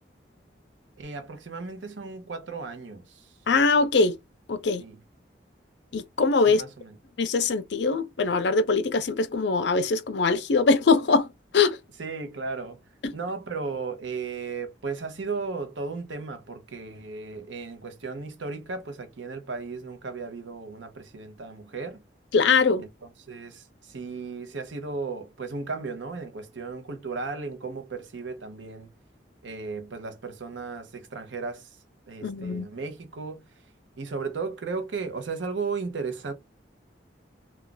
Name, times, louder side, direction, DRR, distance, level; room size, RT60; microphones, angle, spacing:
voice 1, 1.0-3.3 4.8-4.9 6.5-6.9 12.0-12.8 13.1-22.0 23.3-28.9 29.4-31.8 32.1-33.4 34.0-36.3, right 4 dB, 80° right, 0.7 m, -35 dB
voice 2, 3.5-4.2 4.5-4.8 5.9-6.6 7.2-11.8 13.0-13.1 22.3-22.8 32.2-32.7, left 4 dB, 70° left, 0.5 m, -22 dB
2.3 x 2.3 x 3.7 m
head